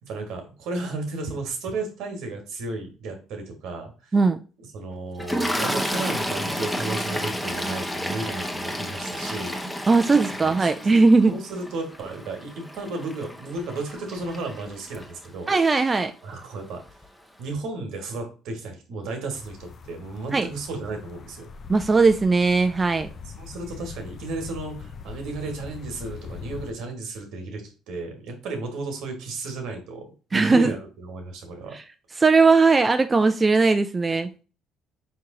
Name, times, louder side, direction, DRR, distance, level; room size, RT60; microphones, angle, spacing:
voice 1, 0.0-4.1 4.7-9.6 10.4-10.9 11.3-15.5 16.2-16.8 17.4-21.5 23.4-31.8, right 3 dB, 75° right, 1.3 m, -34 dB
Toilet flush, 5.2-15.5 16.4-16.6 16.9-17.1, equal, 5° left, 0.7 m, -31 dB
voice 2, 9.9-11.3 15.5-16.1 20.3-20.5 21.7-23.1 30.3-30.7 31.7-31.8 32.2-34.4, right 4 dB, 25° right, 0.4 m, -19 dB
sound 1, 19.3-26.7, left 6 dB, 45° left, 0.5 m, -42 dB
4.4 x 3.0 x 3.6 m
supercardioid pair, 70°, 0 cm